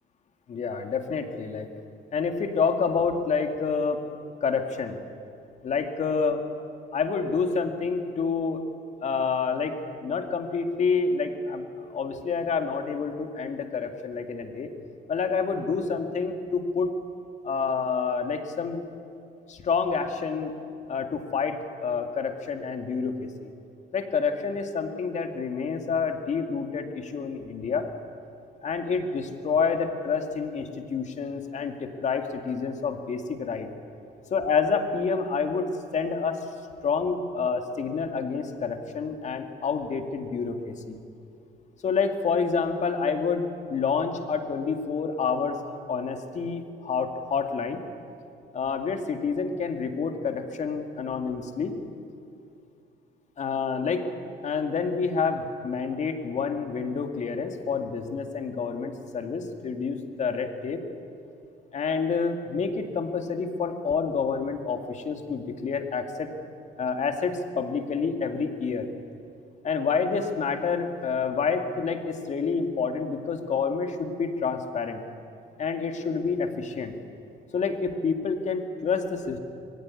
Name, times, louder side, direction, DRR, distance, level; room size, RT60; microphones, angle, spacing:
voice 1, 0.5-1.7 2.1-4.0 4.4-5.0 5.6-6.4 6.9-8.6 9.0-14.7 15.1-16.9 17.4-18.8 19.5-20.5 20.9-23.5 23.9-27.9 28.6-33.7 34.3-36.5 36.8-41.0 41.8-47.8 48.5-51.7 53.4-54.1 54.4-60.8 61.7-66.3 66.8-68.9 69.6-75.0 75.6-76.9 77.5-79.4, left 5 dB, 45° left, 5 dB, 2.2 m, -28 dB
22.5 x 16.0 x 9.8 m, 2.5 s
cardioid pair, 110°, 17 cm